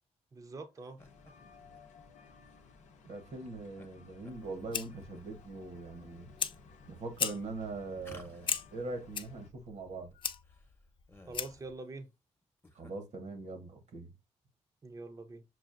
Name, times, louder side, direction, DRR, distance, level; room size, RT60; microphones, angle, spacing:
voice 1, 0.3-1.0 11.3-12.1 14.8-15.4, right 3 dB, 30° right, 0.5 m, -45 dB
sound 1, 0.7-1.3 1.7-1.8 2.4-2.6 3.8-3.9 4.2-5.2 5.7-6.2 6.8-6.9 8.0-9.0 9.2-9.3 9.5-9.6 10.1-10.2 10.4-11.8 12.4-12.9, left 1 dB, 20° left, 0.7 m, -56 dB
sound 2, 1.0-9.5, left 4 dB, 85° left, 0.6 m, -58 dB
voice 2, 3.0-6.3 6.9-10.1 12.7-14.1, right 3 dB, 75° right, 1.0 m, -42 dB
Fire, 4.3-11.8, left 7 dB, 45° left, 0.3 m, -40 dB
6.0 x 2.4 x 2.4 m
cardioid pair, 85°, 12 cm